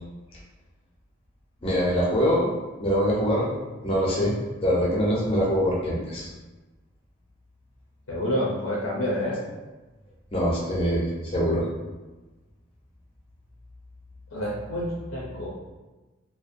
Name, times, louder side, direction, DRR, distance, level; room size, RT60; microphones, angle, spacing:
voice 1, 1.6-2.5 2.8-3.5 3.8-4.3 4.6-6.3 10.3-11.7, equal, 25° left, -5 dB, 0.6 m, -23 dB
voice 2, 8.1-9.4 14.3-15.5, equal, 70° left, -5 dB, 0.5 m, -28 dB
2.5 x 2.1 x 2.5 m, 1.2 s
head